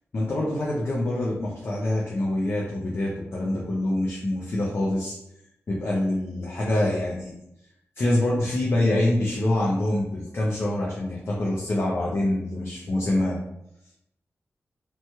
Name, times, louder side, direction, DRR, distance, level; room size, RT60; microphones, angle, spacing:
voice 1, 0.1-5.2 5.7-7.3 8.0-13.4, left 1 dB, 50° left, -4 dB, 0.6 m, -25 dB
3.1 x 2.2 x 2.9 m, 0.81 s
cardioid pair, 80°, 5 cm